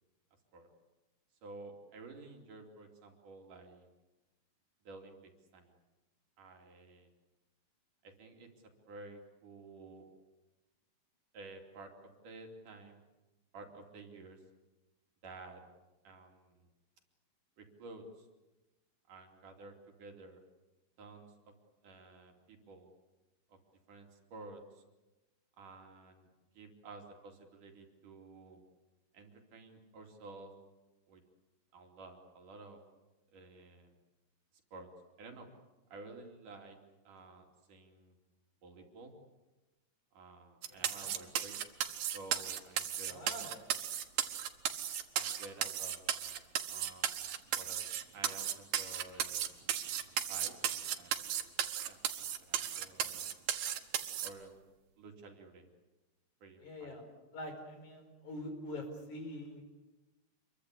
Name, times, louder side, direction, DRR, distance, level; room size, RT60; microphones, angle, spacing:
voice 1, 1.4-3.9 4.8-5.8 6.4-7.1 8.0-8.5 8.9-10.1 11.3-13.0 13.5-14.4 15.2-15.6 16.0-16.7 17.6-18.3 19.1-20.4 21.0-21.5 21.8-22.9 23.5-23.6 23.9-24.8 25.6-26.3 26.5-28.6 29.1-30.5 31.1-31.2 31.7-32.8 33.3-33.9 34.7-34.9 35.2-35.5 35.9-36.8 37.0-38.1 38.6-39.1 40.1-41.6 42.1-43.5 45.1-46.4 46.7-49.4 50.3-50.6 51.0-51.5 51.8-53.3 54.2-54.6 55.0-55.7 56.4-57.0, right 3 dB, 65° right, 3 dB, 4.3 m, -52 dB
sound 1, 40.6-54.3, right 10 dB, 90° right, 3.2 m, -35 dB
voice 2, 40.7-41.1 43.1-43.6 56.6-57.0 57.3-59.6, left 1 dB, 60° left, 5 dB, 6.1 m, -45 dB
27.0 x 23.0 x 8.3 m, 1.1 s
omnidirectional pair, 4.0 m